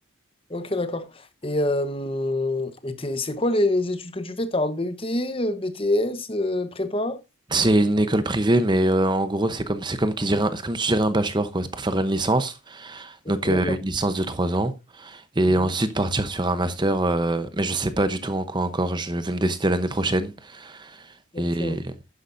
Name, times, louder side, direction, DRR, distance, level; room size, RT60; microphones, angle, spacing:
voice 1, 0.5-1.1 1.4-7.2 13.2-13.7 15.6-15.7 21.3-21.8, left 1 dB, 25° left, 1.0 m, -26 dB
voice 2, 7.5-21.9, right 1 dB, 20° right, 0.8 m, -24 dB
11.5 x 10.0 x 2.6 m
head